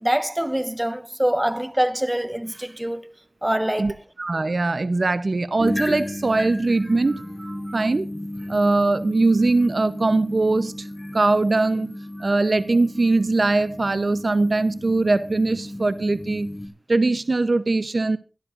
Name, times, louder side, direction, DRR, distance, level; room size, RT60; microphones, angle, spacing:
voice 1, 0.0-3.1 3.4-4.0, right 1 dB, 15° right, 1.2 m, -24 dB
voice 2, 4.2-8.1 8.5-10.9 11.1-16.5 16.9-18.2, right 3 dB, 65° right, 0.7 m, -21 dB
sound 1, 5.6-16.7, left 1 dB, 30° left, 3.2 m, -34 dB
23.5 x 13.0 x 2.5 m
wide cardioid pair, 70°, 0 cm